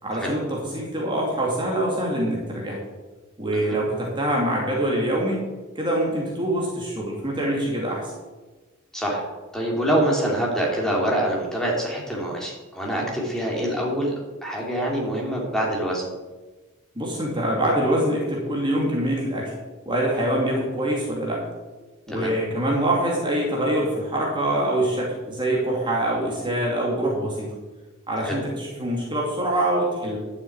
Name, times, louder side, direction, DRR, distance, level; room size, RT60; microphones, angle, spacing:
voice 1, 0.0-2.8 3.4-5.4 5.8-8.1 16.9-19.5 19.9-21.4 22.1-27.5 28.1-30.2, right 1 dB, 25° right, -2 dB, 2.5 m, -24 dB
voice 2, 8.9-9.2 9.5-14.1 14.4-16.0 22.1-22.3 28.2-28.4, right 1 dB, ahead, -3 dB, 3.1 m, -25 dB
11.5 x 6.6 x 8.7 m, 1.2 s
head